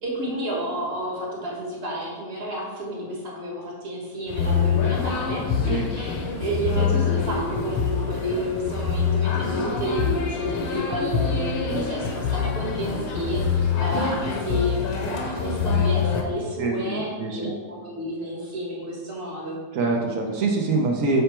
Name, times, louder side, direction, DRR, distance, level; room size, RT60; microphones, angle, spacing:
voice 1, 0.0-6.1 6.4-19.6, equal, 30° right, -3 dB, 1.5 m, -30 dB
sound 1, 4.3-16.2, left 6 dB, 80° left, 1.6 m, -25 dB
voice 2, 16.6-17.5 19.7-21.2, right 3 dB, 80° right, 0 dB, 0.7 m, -24 dB
6.7 x 3.5 x 4.4 m, 1.3 s
omnidirectional pair, 2.3 m